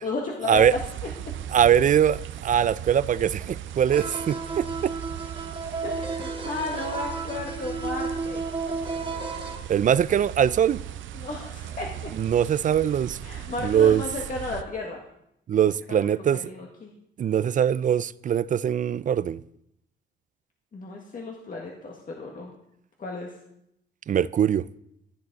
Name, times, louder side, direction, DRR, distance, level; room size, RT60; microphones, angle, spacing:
voice 1, 0.0-0.8 5.8-8.4 11.1-12.1 13.2-15.0 15.9-16.0 16.3-16.9 20.7-22.5 23.0-23.3, left 3 dB, 45° left, 1.7 m, -34 dB
sound 1, 0.5-14.6, right 11 dB, 75° right, 0.7 m, -38 dB
voice 2, 1.5-4.9 9.7-10.8 12.2-13.2 13.6-14.0 15.5-16.5 17.2-19.4 24.1-24.7, right 9 dB, 40° right, 0.4 m, -22 dB
sound 2, 3.9-9.6, right 4 dB, 25° right, 2.2 m, -33 dB
15.0 x 7.7 x 4.0 m
cardioid pair, 90°, 20 cm